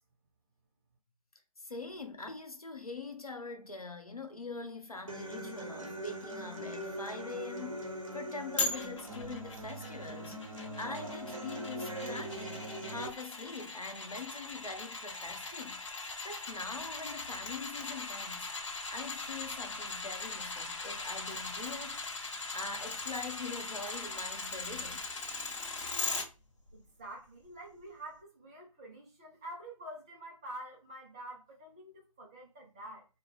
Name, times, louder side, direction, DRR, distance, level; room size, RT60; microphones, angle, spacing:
voice 1, 1.6-15.8 16.2-18.5 18.9-25.1, left 3 dB, 85° left, 0.9 m, -43 dB
Human voice / Acoustic guitar, 5.1-13.1, right 1 dB, 65° right, 0.9 m, -41 dB
sound 1, 8.6-26.2 26.7-26.8, left 3 dB, 55° left, 0.9 m, -40 dB
voice 2, 26.7-33.1, right 1 dB, 10° right, 0.3 m, -47 dB
3.8 x 2.2 x 3.2 m
figure-of-eight pair, 140°, 18 cm